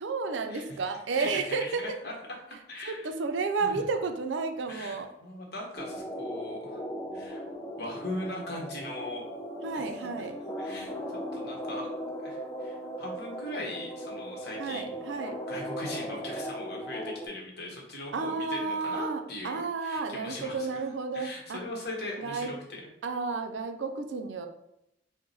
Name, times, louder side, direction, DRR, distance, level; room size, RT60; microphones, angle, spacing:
voice 1, 0.0-1.8 2.9-5.1 9.6-10.4 14.6-15.4 18.1-21.6 22.2-22.5 23.0-24.5, right 4 dB, 80° right, 7 dB, 0.5 m, -32 dB
voice 2, 1.1-2.1 2.7-3.1 3.6-3.8 4.7-6.8 7.1-7.4 7.8-9.2 9.7-9.8 10.6-11.0 11.3-11.9 12.2-14.9 15.2-20.8 21.1-22.8, left 1 dB, 60° left, -1 dB, 1.1 m, -40 dB
sound 1, 5.8-17.3, equal, 15° left, 0.5 m, -38 dB
4.6 x 2.2 x 4.0 m, 0.82 s
head